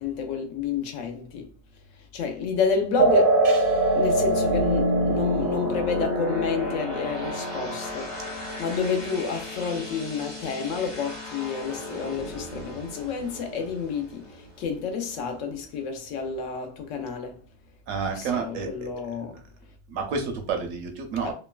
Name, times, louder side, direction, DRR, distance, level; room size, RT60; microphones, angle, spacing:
voice 1, 0.0-1.5 2.1-3.4 3.9-8.2 8.6-17.4 18.1-19.4 21.2-21.3, left 5 dB, 75° left, 0.9 m, -30 dB
sound 1, 2.5-15.1, left 2 dB, 35° left, 0.6 m, -32 dB
sound 2, 3.0-10.0, right 2 dB, 55° right, 0.6 m, -25 dB
voice 2, 17.9-18.9 19.9-21.3, right 5 dB, 80° right, 1.0 m, -29 dB
3.0 x 2.1 x 2.3 m
omnidirectional pair, 1.4 m